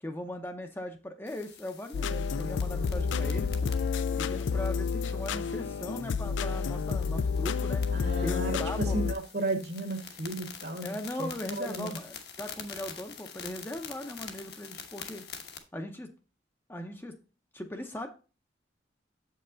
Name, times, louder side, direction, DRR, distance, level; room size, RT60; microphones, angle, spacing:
voice 1, 0.0-3.7 4.2-7.8 8.2-9.0 10.8-15.3 15.7-16.1 16.7-17.1 17.5-18.1, left 1 dB, 10° left, 0.7 m, -39 dB
sound 1, 1.3-15.6, left 7 dB, 55° left, 1.1 m, -47 dB
sound 2, 1.9-9.1, left 5 dB, 75° left, 0.4 m, -30 dB
voice 2, 7.9-11.3 11.6-12.0, right 2 dB, 60° right, 1.5 m, -34 dB
7.7 x 5.5 x 3.9 m
head